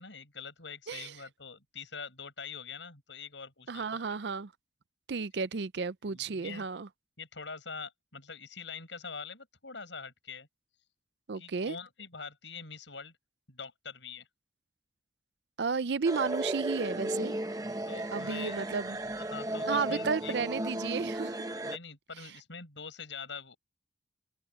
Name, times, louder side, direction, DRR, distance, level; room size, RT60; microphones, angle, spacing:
voice 1, 0.0-4.2 6.0-6.7 7.2-10.5 11.3-13.1 13.5-14.3 17.9-18.7 19.3-20.3 21.6-23.6, left 5 dB, 85° left, 7.4 m, -44 dB
voice 2, 3.7-4.5 5.1-6.9 11.3-11.7 15.6-17.4 18.1-19.0 19.7-21.4, right 5 dB, 70° right, 0.5 m, -33 dB
sound 1, 16.0-21.8, right 1 dB, 20° right, 1.0 m, -35 dB
head